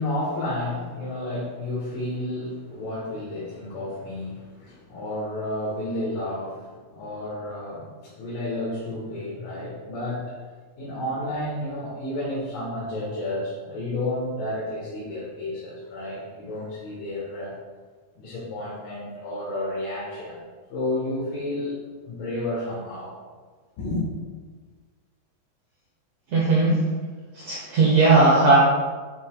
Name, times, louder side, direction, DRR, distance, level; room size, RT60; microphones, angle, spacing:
voice 1, 0.0-10.3 10.8-17.5 18.2-20.4 20.7-21.8 22.0-23.1 23.8-24.0, left 1 dB, 70° left, -7 dB, 2.9 m, -31 dB
voice 2, 26.3-26.8 27.4-28.6, right 3 dB, 65° right, -4 dB, 1.8 m, -17 dB
8.2 x 7.1 x 2.3 m, 1.4 s
omnidirectional pair, 4.1 m